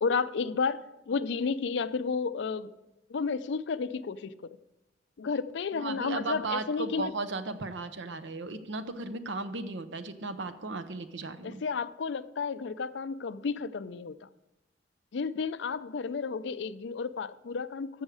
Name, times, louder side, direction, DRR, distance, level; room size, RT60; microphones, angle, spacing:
voice 1, 0.0-2.7 3.1-4.3 5.2-7.1 11.4-14.3 15.1-17.9, left 5 dB, 70° left, 15 dB, 0.4 m, -32 dB
voice 2, 5.8-11.6, right 3 dB, 75° right, 11 dB, 0.8 m, -36 dB
14.5 x 6.4 x 4.8 m, 0.98 s
head